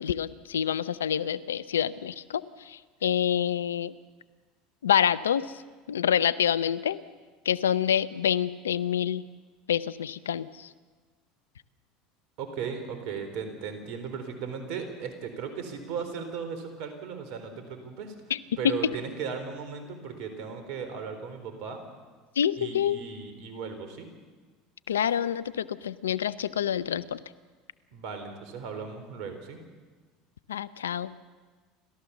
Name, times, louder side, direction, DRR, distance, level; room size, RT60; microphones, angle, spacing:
voice 1, 0.0-3.9 4.8-5.5 5.9-7.0 7.4-9.2 9.7-10.7 18.3-18.4 18.6-18.7 22.4-23.0 24.9-27.2 30.5-31.1, left 9 dB, 90° left, 17 dB, 0.6 m, -27 dB
voice 2, 12.4-18.1 18.6-21.8 22.6-24.1 27.9-29.6, right 6 dB, 65° right, 7 dB, 4.0 m, -37 dB
29.0 x 14.0 x 7.2 m, 1.4 s
hypercardioid pair, 80°, 0 cm